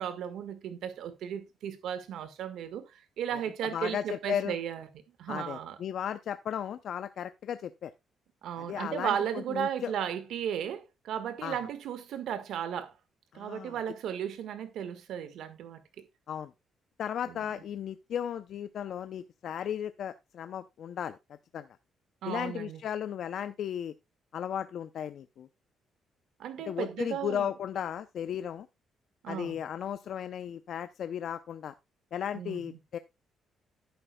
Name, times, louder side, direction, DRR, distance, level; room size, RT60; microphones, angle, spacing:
voice 1, 0.0-4.9 5.2-5.8 8.4-12.9 13.3-15.8 17.3-17.4 22.2-22.8 26.4-27.5 29.2-29.6 32.3-32.8, right 9 dB, 80° right, 1.5 m, -35 dB
voice 2, 3.7-4.6 5.3-7.9 8.6-9.9 11.4-11.6 13.3-13.8 16.3-16.5 17.0-21.2 21.5-21.7 22.3-23.9 24.3-25.5 26.7-28.7 29.3-31.7 32.1-33.0, left 9 dB, 65° left, 0.5 m, -35 dB
11.5 x 9.1 x 2.2 m
cardioid pair, 90°, 0 cm